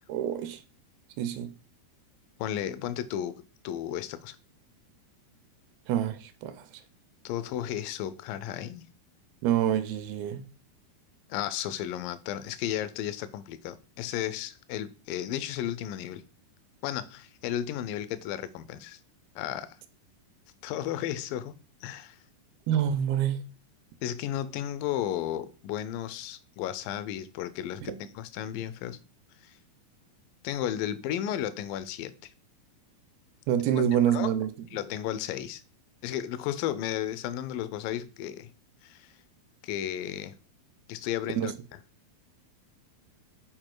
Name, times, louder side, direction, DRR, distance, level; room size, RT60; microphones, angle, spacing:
voice 1, 0.1-0.6 1.2-1.5 5.9-6.7 9.4-10.5 22.7-23.4 27.8-28.1 33.5-34.5 41.4-41.5, right 10 dB, 85° right, 2.5 m, -27 dB
voice 2, 2.4-4.4 7.2-8.8 11.3-16.2 16.8-19.0 19.4-19.8 20.6-22.2 24.0-29.0 29.4-29.6 30.4-32.3 33.8-34.3 34.7-35.6 36.0-38.5 38.8-39.1 39.6-40.3 40.9-41.5, left 11 dB, 80° left, 2.1 m, -34 dB
7.6 x 4.6 x 4.6 m
omnidirectional pair, 4.5 m